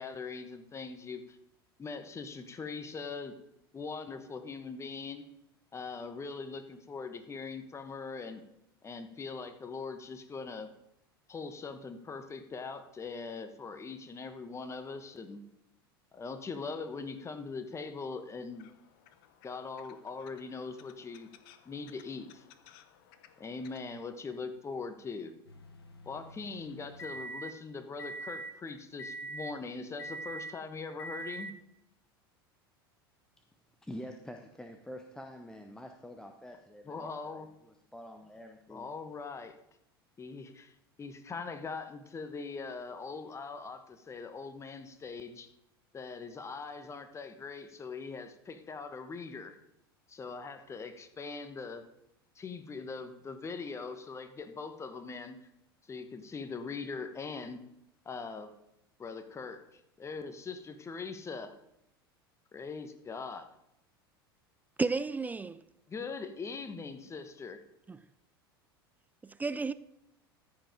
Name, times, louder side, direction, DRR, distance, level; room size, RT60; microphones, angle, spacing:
voice 1, 0.0-1.4 1.8-3.3 3.7-5.2 5.7-8.4 8.8-10.7 11.3-15.4 16.1-18.7 19.4-21.3 21.6-22.4 23.4-25.3 26.0-31.5 36.8-37.5 38.7-39.5 40.2-40.7 41.0-45.5 45.9-49.6 50.1-51.8 52.3-55.4 55.9-57.6 58.0-58.5 59.0-61.5 62.5-63.5 65.9-67.6, left 4 dB, 20° left, 1.2 m, -41 dB
sound 1, 18.5-23.8, left 10 dB, 60° left, 0.9 m, -60 dB
sound 2, 25.5-27.5 28.0-28.5 29.0-29.5 30.0-30.5 31.0-31.5, right 2 dB, 85° left, 1.1 m, -43 dB
voice 2, 33.8-38.9, equal, 5° left, 0.8 m, -47 dB
voice 3, 64.8-65.6 67.9-68.0 69.2-69.7, right 4 dB, 15° right, 0.4 m, -32 dB
14.0 x 5.2 x 5.1 m
hypercardioid pair, 80°, 13 cm